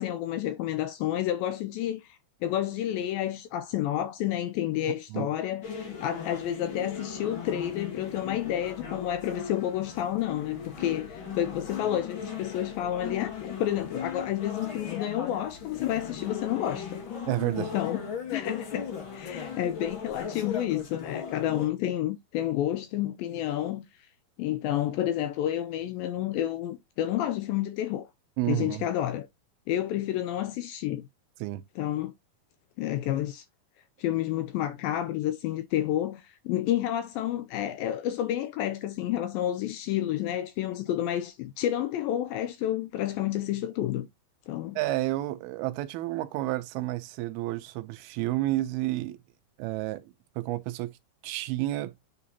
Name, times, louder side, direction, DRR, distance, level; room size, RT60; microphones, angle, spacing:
voice 1, 0.0-17.0 17.6-23.9 24.4-28.1 28.5-29.3 29.7-31.0 31.8-32.1 32.8-33.5 34.0-44.1 44.5-44.8, left 12 dB, 85° left, 2.1 m, -30 dB
sound 1, 5.6-21.7, left 6 dB, 60° left, 1.3 m, -38 dB
voice 2, 17.3-17.7 28.4-28.9 31.4-31.6 44.8-49.2 49.6-50.9 51.2-51.9, right 17 dB, 85° right, 2.5 m, -30 dB
9.2 x 3.7 x 2.8 m
omnidirectional pair, 4.5 m